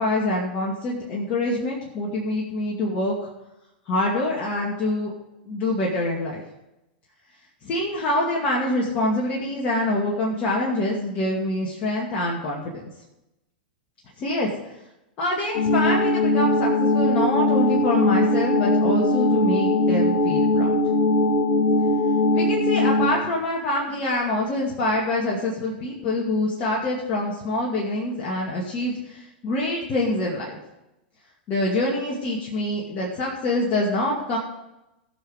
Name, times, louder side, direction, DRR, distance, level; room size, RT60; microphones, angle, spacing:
voice 1, 0.0-3.3 3.9-5.1 5.5-6.4 7.6-12.9 14.2-14.5 15.2-20.7 22.3-30.6 31.5-34.4, left 1 dB, 35° left, -3 dB, 2.4 m, -25 dB
sound 1, 15.5-23.1, left 2 dB, 55° left, 1.9 m, -20 dB
17.5 x 6.3 x 4.9 m, 0.92 s
figure-of-eight pair, 95°, 5 cm